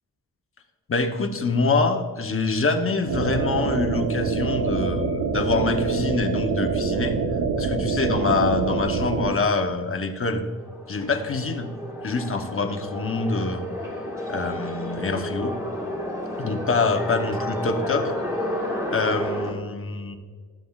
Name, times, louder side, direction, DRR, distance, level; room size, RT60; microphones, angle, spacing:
voice 1, 0.9-7.2 7.6-10.4 10.9-11.7 12.0-13.7 14.3-15.5 16.4-18.1 18.9-20.2, left 3 dB, 35° left, 6 dB, 0.8 m, -25 dB
sound 1, 3.1-9.3, right 4 dB, 70° right, 0.8 m, -25 dB
sound 2, 10.3-19.5, left 1 dB, 10° right, 1.5 m, -31 dB
13.0 x 7.6 x 2.3 m, 1.5 s
wide cardioid pair, 140°, 37 cm